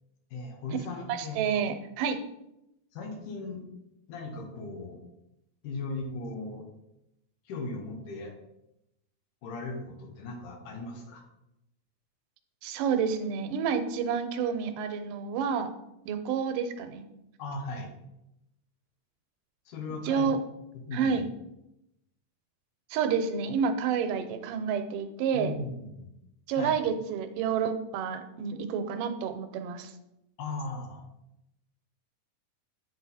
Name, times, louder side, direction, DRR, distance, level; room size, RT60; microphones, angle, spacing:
voice 1, 0.3-1.6 2.9-3.7 4.1-5.0 5.6-6.6 7.5-8.4 9.4-11.2 17.4-17.9 19.7-20.3 20.7-21.3 25.3-26.1 26.6-26.8 30.4-31.0, left 3 dB, 75° left, 3 dB, 2.7 m, -37 dB
voice 2, 1.1-2.2 12.6-15.7 16.1-17.1 20.1-20.4 20.9-21.2 22.9-25.5 26.5-29.9, right 6 dB, 85° right, 9 dB, 2.2 m, -29 dB
9.3 x 4.5 x 4.1 m, 0.87 s
omnidirectional pair, 3.7 m